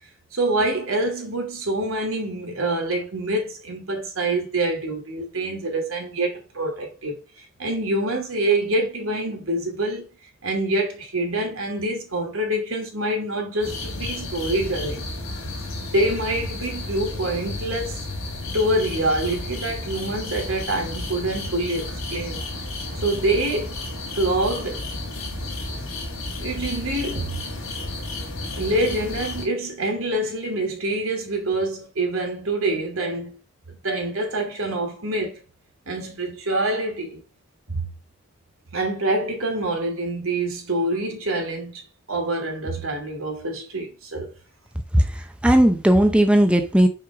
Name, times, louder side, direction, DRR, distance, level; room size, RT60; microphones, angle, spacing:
voice 1, 0.3-10.1 10.4-15.1 15.8-18.1 18.5-22.4 23.0-23.7 24.1-24.9 26.4-27.4 28.6-33.4 33.7-35.4 35.9-37.2 37.7-37.8 38.7-41.8 42.1-44.3, right 1 dB, 85° right, 2.7 m, -26 dB
sound 1, 13.6-29.5, left 2 dB, 85° left, 2.5 m, -32 dB
voice 2, 44.9-46.9, right 1 dB, 5° right, 0.7 m, -17 dB
5.7 x 5.5 x 4.8 m
head